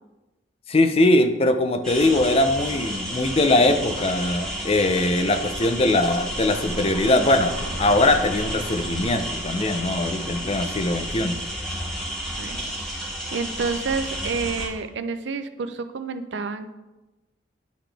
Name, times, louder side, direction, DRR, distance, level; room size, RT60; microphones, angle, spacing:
voice 1, 0.7-11.4, left 2 dB, 30° left, 7 dB, 0.5 m, -21 dB
sound 1, 1.8-14.7, equal, 5° left, 1.5 m, -32 dB
sound 2, 6.0-12.1, right 1 dB, 55° right, 1.7 m, -38 dB
voice 2, 12.4-13.0 13.3-16.7, right 4 dB, 75° right, 9 dB, 0.5 m, -29 dB
10.5 x 3.9 x 3.4 m, 1.1 s
head